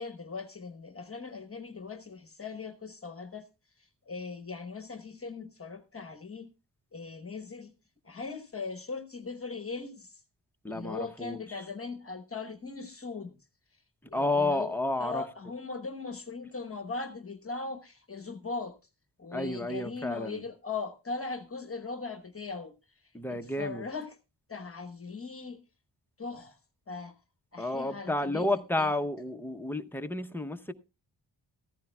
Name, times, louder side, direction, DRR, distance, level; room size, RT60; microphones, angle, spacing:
voice 1, 0.0-3.5 3.8-6.5 6.9-7.7 8.0-10.2 10.7-13.4 14.1-18.8 19.2-22.7 23.0-24.2 24.5-25.6 26.2-26.6 26.9-27.1 27.5-28.9, left 4 dB, 30° left, 1.1 m, -39 dB
voice 2, 10.6-11.4 14.1-15.2 19.3-20.4 23.1-23.8 27.6-30.7, left 2 dB, 5° left, 0.6 m, -31 dB
15.0 x 15.0 x 2.2 m
wide cardioid pair, 175°, 44 cm